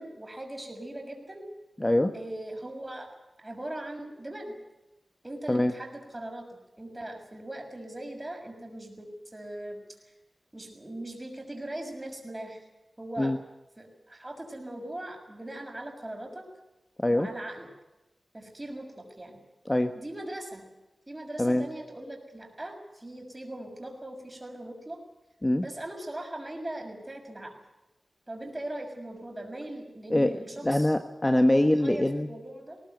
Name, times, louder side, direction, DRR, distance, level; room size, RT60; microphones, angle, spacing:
voice 1, 0.0-1.5 2.1-3.1 3.4-4.6 5.2-9.8 10.5-12.6 13.0-13.3 13.8-16.5 17.1-17.7 18.3-19.4 19.9-20.7 21.1-25.0 25.6-27.5 28.3-30.9 31.6-32.8, right 1 dB, 25° right, 4 dB, 6.4 m, -40 dB
voice 2, 1.8-2.1 5.5-5.7 13.2-13.4 17.0-17.3 19.6-19.9 21.4-21.7 25.4-25.6 30.1-30.3 30.6-32.3, left 1 dB, 20° left, 7 dB, 1.4 m, -23 dB
21.0 x 18.5 x 9.3 m, 0.98 s
wide cardioid pair, 75°, 0 cm